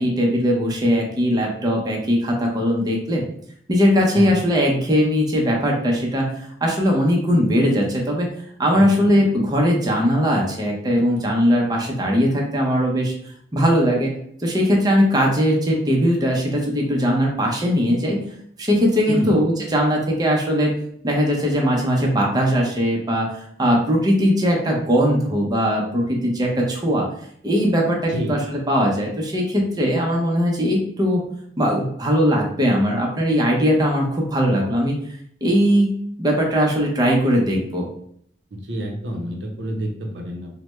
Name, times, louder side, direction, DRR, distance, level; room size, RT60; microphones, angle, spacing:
voice 1, 0.0-3.2 3.7-6.3 6.6-8.3 8.6-13.1 13.5-14.1 14.4-18.2 18.6-20.7 21.0-27.1 27.4-28.4 28.7-31.2 31.6-35.0 35.4-35.9 36.2-37.9, equal, 25° right, -1 dB, 0.5 m, -19 dB
voice 2, 8.7-9.2 19.1-19.4 28.1-28.4 38.5-40.5, equal, 75° right, 2 dB, 0.6 m, -29 dB
3.2 x 2.1 x 3.0 m, 0.66 s
head